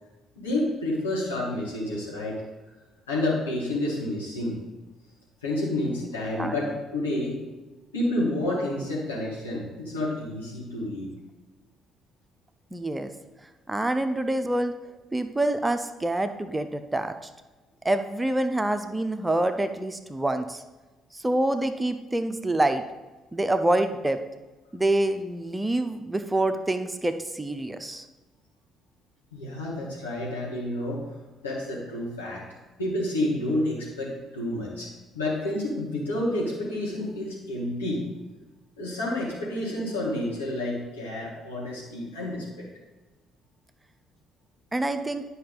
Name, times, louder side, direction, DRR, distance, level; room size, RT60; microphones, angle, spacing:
voice 1, 0.4-2.4 3.1-4.6 5.4-7.4 7.9-11.1 29.3-31.0 31.4-32.4 32.8-34.9 35.1-38.1 38.8-42.7, left 1 dB, 80° left, -6 dB, 2.4 m, -29 dB
voice 2, 12.7-13.1 13.7-14.8 15.1-17.1 17.8-20.6 21.1-22.8 23.3-24.2 24.7-28.0 44.7-45.2, right 1 dB, 15° right, 8 dB, 0.6 m, -26 dB
10.0 x 5.4 x 4.0 m, 1.2 s
figure-of-eight pair, 45°, 0 cm